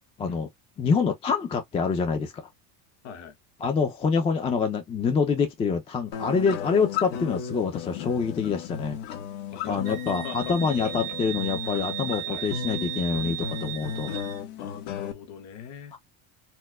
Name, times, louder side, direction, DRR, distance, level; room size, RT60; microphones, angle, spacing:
voice 1, 0.8-2.5 3.6-9.0 9.7-14.1 15.9-16.0, left 5 dB, 15° left, 0.3 m, -26 dB
voice 2, 3.0-3.3 7.1-7.3 9.5-10.5 10.8-11.2 12.3-12.5 14.6-16.0, left 8 dB, 40° left, 1.0 m, -41 dB
sound 1, 6.1-15.1, left 8 dB, 75° left, 1.1 m, -35 dB
Wind instrument woodwind instrument, 9.8-14.4, right 15 dB, 75° right, 0.9 m, -36 dB
4.3 x 2.2 x 2.2 m
cardioid pair, 145°, 41 cm